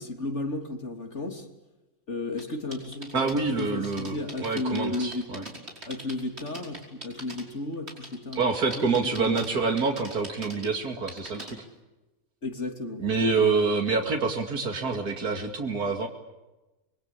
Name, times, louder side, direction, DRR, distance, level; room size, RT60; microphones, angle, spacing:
voice 1, 0.0-1.5 2.1-5.3 5.8-8.4 8.8-9.4 12.4-13.0, left 2 dB, 50° left, 5 dB, 3.4 m, -33 dB
sound 1, 2.4-7.4 7.7-8.4 8.7-9.5 9.8-11.5, right 1 dB, 45° right, 5.5 m, -41 dB
voice 2, 3.1-5.4 8.4-11.6 13.0-16.1, right 4 dB, 90° right, 3 dB, 2.9 m, -27 dB
25.5 x 23.0 x 8.5 m, 1.1 s
omnidirectional pair, 1.6 m